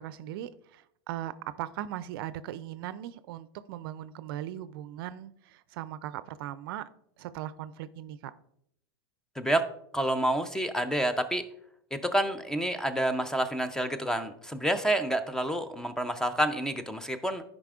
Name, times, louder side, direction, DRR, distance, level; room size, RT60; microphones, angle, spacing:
voice 1, 0.0-6.9 7.2-8.3, right 12 dB, 65° right, 15 dB, 0.4 m, -39 dB
voice 2, 9.4-9.7 9.9-11.5 11.9-17.4, right 1 dB, 5° left, 11 dB, 0.5 m, -28 dB
11.5 x 5.1 x 2.4 m, 0.72 s
hypercardioid pair, 110°, 13 cm